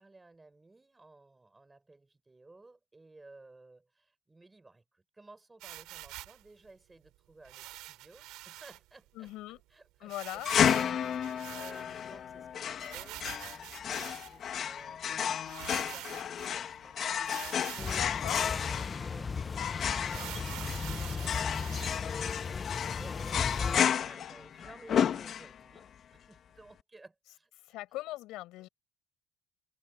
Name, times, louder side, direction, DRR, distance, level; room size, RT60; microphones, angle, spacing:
voice 1, 0.0-18.5 19.0-27.5, right 2 dB, 10° right, 7.2 m, -57 dB
sound 1, 5.6-6.4 7.4-8.8 9.2-9.3 9.5-9.6 10.1-12.1 12.8-14.5 15.1-15.2 15.5-16.5 17.2-18.1 18.6-18.7 19.1-19.2 20.0-22.0, right 18 dB, 90° right, 4.8 m, -45 dB
voice 2, 9.2-9.6 10.0-10.5 17.9-18.5 27.6-28.7, left 17 dB, 80° left, 5.2 m, -40 dB
sound 2, 10.4-25.8, left 8 dB, 40° left, 1.5 m, -32 dB
sound 3, 17.8-23.8, left 5 dB, 20° left, 1.0 m, -36 dB
cardioid pair, 160°, 0 cm